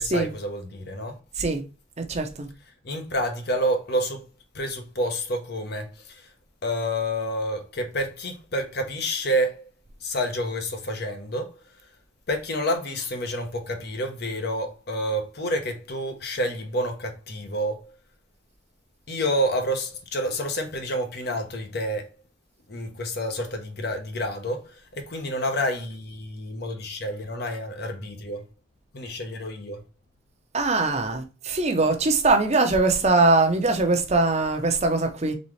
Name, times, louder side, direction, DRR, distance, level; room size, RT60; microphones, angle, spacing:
voice 1, 0.0-1.2 2.8-4.3 4.5-6.3 6.6-9.7 10.0-11.9 12.3-18.0 19.1-22.1 22.7-28.4 28.9-29.8, equal, 55° left, 0.9 m, -29 dB
voice 2, 2.0-2.5 30.5-35.4, right 3 dB, 35° right, 0.7 m, -22 dB
4.1 x 3.6 x 3.2 m
head